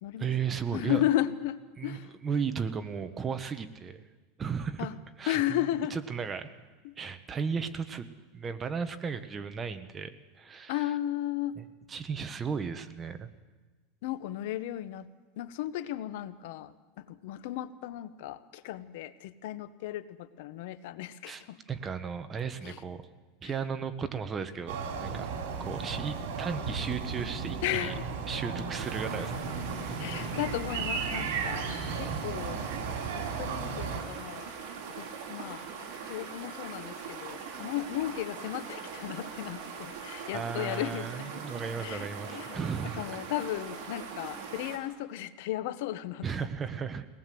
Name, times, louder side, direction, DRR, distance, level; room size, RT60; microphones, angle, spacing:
voice 1, 0.2-1.0 1.8-4.0 4.4-4.9 5.2-5.6 5.9-6.5 7.0-8.0 8.3-10.8 11.6-11.7 11.9-13.3 21.2-21.4 21.7-23.0 23.4-25.3 25.6-27.9 28.3-29.3 29.9-30.3 32.0-32.3 40.3-43.0 46.2-47.1, right 6 dB, 20° right, 10 dB, 1.0 m, -35 dB
voice 2, 0.7-2.1 4.8-5.0 5.3-6.0 6.8-6.9 10.7-11.6 14.0-15.1 15.4-21.6 22.6-22.8 23.4-23.6 27.6-28.1 30.0-31.7 32.0-32.6 33.1-34.5 34.9-35.6 36.0-41.5 41.8-42.6 43.0-46.5, left 13 dB, 65° left, 14 dB, 0.9 m, -35 dB
sound 1, 24.7-34.0, right 5 dB, 75° right, 3.9 m, -35 dB
sound 2, 28.7-44.8, right 6 dB, 55° right, 4.3 m, -41 dB
22.5 x 19.0 x 7.7 m, 1.3 s
supercardioid pair, 150°, 0 cm